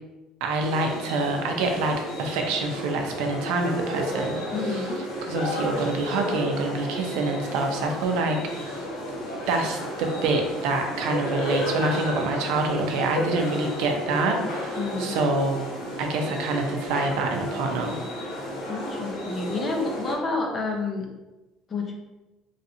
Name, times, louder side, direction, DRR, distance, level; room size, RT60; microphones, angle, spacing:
voice 1, 0.4-8.8 9.5-15.7 16.0-18.0, right 3 dB, 80° right, 3 dB, 0.5 m, -26 dB
sound 1, 0.6-20.1, left 1 dB, 90° left, 1.0 m, -32 dB
voice 2, 4.5-5.0 14.8-15.2 18.7-21.1 21.7-21.9, left 3 dB, 30° left, 1 dB, 0.6 m, -29 dB
3.2 x 2.7 x 2.6 m, 1.0 s
cardioid pair, 145°, 0 cm